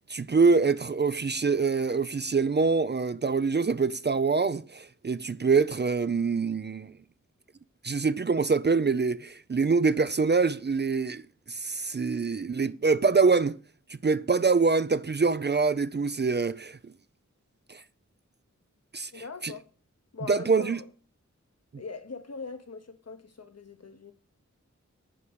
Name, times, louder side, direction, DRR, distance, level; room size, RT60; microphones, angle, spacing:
voice 1, 0.1-6.9 7.8-11.2 11.5-13.6 14.0-16.9 17.7-17.8 18.9-19.5 20.3-20.8, right 4 dB, 35° right, 0.4 m, -25 dB
voice 2, 19.1-19.7 20.1-20.9 21.8-24.1, left 4 dB, 60° left, 1.1 m, -41 dB
11.0 x 5.0 x 6.2 m
wide cardioid pair, 75°, 29 cm